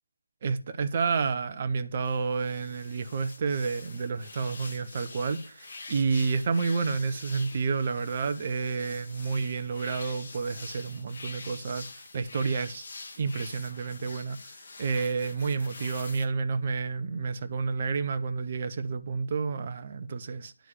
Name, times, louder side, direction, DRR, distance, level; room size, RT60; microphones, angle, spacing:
voice 1, 0.4-12.8 13.2-14.5 14.8-20.5, right 4 dB, 25° right, 0.7 m, -30 dB
sound 1, 2.0-16.2, left 3 dB, 30° left, 1.4 m, -45 dB
10.0 x 4.7 x 7.2 m
figure-of-eight pair, 160°, 0 cm